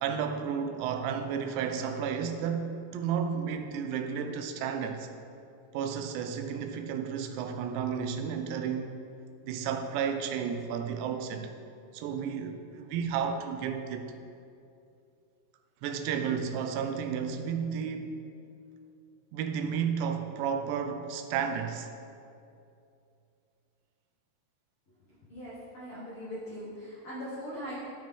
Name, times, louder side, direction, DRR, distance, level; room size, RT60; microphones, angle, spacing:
voice 1, 0.0-5.1 5.7-8.9 9.4-11.5 11.9-14.1 15.8-18.2 19.3-21.9, right 7 dB, 90° right, 6 dB, 2.8 m, -32 dB
voice 2, 25.3-27.7, equal, 85° left, -8 dB, 1.2 m, -40 dB
12.5 x 5.0 x 3.6 m, 2.5 s
omnidirectional pair, 4.9 m